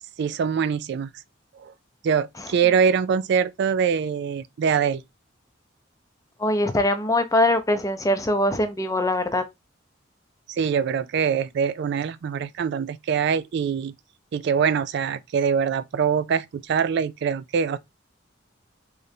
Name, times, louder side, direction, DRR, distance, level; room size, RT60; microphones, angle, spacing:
voice 1, 0.2-1.1 1.6-1.7 2.0-5.0 10.5-13.9 14.3-17.8, right 6 dB, 60° right, 0.3 m, -23 dB
voice 2, 6.4-9.4, left 1 dB, 15° left, 0.6 m, -22 dB
3.8 x 3.2 x 2.7 m
head